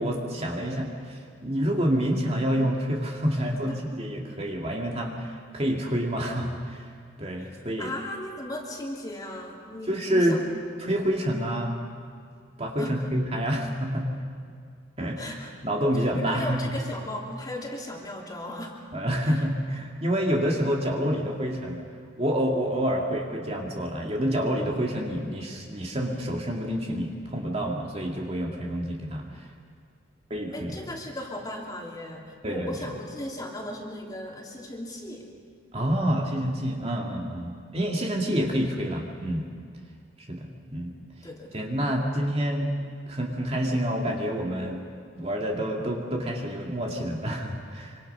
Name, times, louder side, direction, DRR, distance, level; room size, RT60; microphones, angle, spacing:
voice 1, 0.0-6.9 7.2-7.9 9.9-10.4 10.8-11.8 12.6-14.1 15.0-15.2 15.6-16.7 18.9-21.8 22.2-29.2 30.3-30.8 32.4-32.7 35.7-39.5 40.2-40.9 41.5-42.7 43.1-44.8 45.1-48.0, equal, 30° right, 0 dB, 2.3 m, -28 dB
voice 2, 3.4-3.8 7.4-10.4 12.8-13.1 15.2-15.5 15.9-18.8 19.2-19.3 30.5-35.3 41.2-41.6, left 1 dB, 20° left, -1 dB, 2.8 m, -37 dB
26.0 x 25.5 x 5.6 m, 2.2 s
head